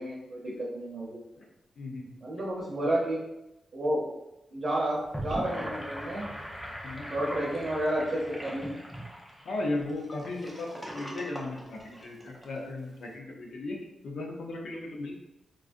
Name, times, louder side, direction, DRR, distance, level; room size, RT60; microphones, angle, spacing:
voice 1, 0.0-1.2 2.2-3.2 3.7-4.0 4.5-6.3 7.1-8.8, right 1 dB, 45° right, -5 dB, 0.7 m, -31 dB
voice 2, 1.8-2.2 2.7-2.9 6.8-7.1 9.4-13.8 14.0-15.2, left 2 dB, 80° left, -1 dB, 0.6 m, -36 dB
Gurgling / Sink (filling or washing), 4.9-12.5, equal, ahead, 0.5 m, -40 dB
3.8 x 2.3 x 2.5 m, 0.91 s
wide cardioid pair, 165°, 0 cm